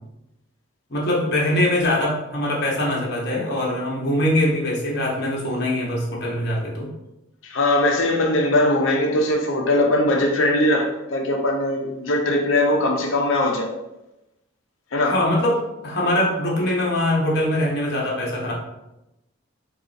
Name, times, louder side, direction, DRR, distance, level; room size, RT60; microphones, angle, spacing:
voice 1, 0.9-6.9 15.0-18.5, left 1 dB, 50° left, -3 dB, 1.0 m, -22 dB
voice 2, 7.4-13.7 14.9-15.2, left 1 dB, 70° left, 3 dB, 0.6 m, -20 dB
3.8 x 2.4 x 3.9 m, 0.91 s
head